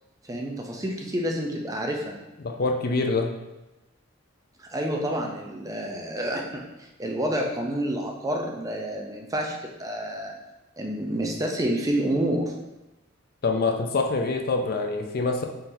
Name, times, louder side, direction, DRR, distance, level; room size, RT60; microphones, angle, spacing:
voice 1, 0.2-2.2 4.6-10.4 10.8-12.5, right 1 dB, 15° right, 1 dB, 0.4 m, -29 dB
voice 2, 2.4-3.3 13.4-15.4, left 3 dB, 50° left, 4 dB, 0.4 m, -25 dB
4.2 x 3.8 x 2.6 m, 1.0 s
head